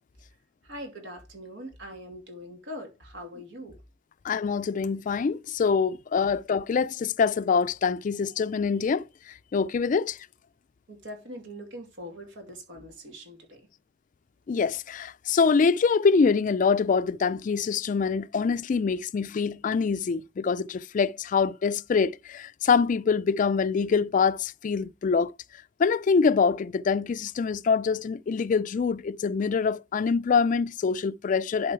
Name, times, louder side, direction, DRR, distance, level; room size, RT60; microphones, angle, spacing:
voice 1, 0.6-3.8 10.9-13.7, equal, 85° right, 2.5 m, -42 dB
voice 2, 4.2-10.2 14.5-25.3 25.8-31.7, left 5 dB, 45° left, 0.3 m, -25 dB
11.0 x 3.9 x 4.5 m
head